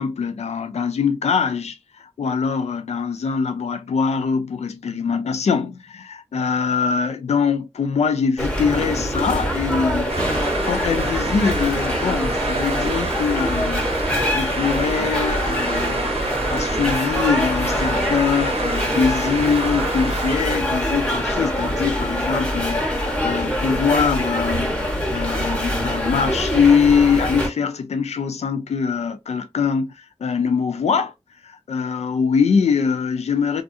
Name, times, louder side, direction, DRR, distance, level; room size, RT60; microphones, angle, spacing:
voice 1, 0.0-10.1 10.7-16.1 16.5-24.8 25.1-31.1 31.4-33.6, left 6 dB, 90° left, 0.4 m, -23 dB
sound 1, 8.4-27.5, equal, 10° left, 1.0 m, -24 dB
sound 2, 10.1-20.4, right 3 dB, 65° right, 0.6 m, -29 dB
2.6 x 2.4 x 2.4 m
wide cardioid pair, 65°, 11 cm